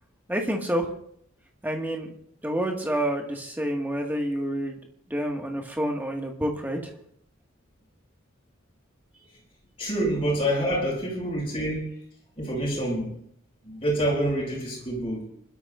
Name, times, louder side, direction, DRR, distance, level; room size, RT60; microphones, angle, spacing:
voice 1, 0.3-0.9 1.6-2.1 2.4-4.8 5.1-6.9, equal, 10° right, 1.9 m, -28 dB
voice 2, 9.8-11.8 12.4-13.1 13.6-15.2, right 1 dB, 30° left, 6.2 m, -27 dB
30.0 x 12.5 x 2.6 m
head